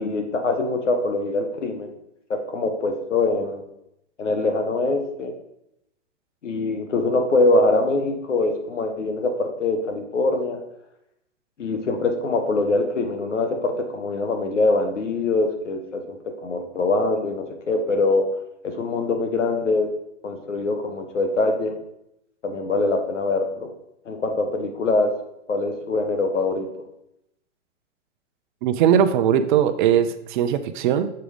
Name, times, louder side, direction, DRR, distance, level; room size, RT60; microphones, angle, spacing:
voice 1, 0.0-1.9 2.3-3.6 4.2-5.3 6.4-10.6 11.6-18.3 18.6-19.9 20.2-21.8 22.4-23.7 24.1-25.2 25.5-26.7, left 2 dB, 90° left, 5 dB, 1.6 m, -23 dB
voice 2, 28.6-31.1, right 9 dB, 45° right, 10 dB, 0.6 m, -20 dB
6.7 x 5.0 x 5.0 m, 0.81 s
hypercardioid pair, 130°, 35 cm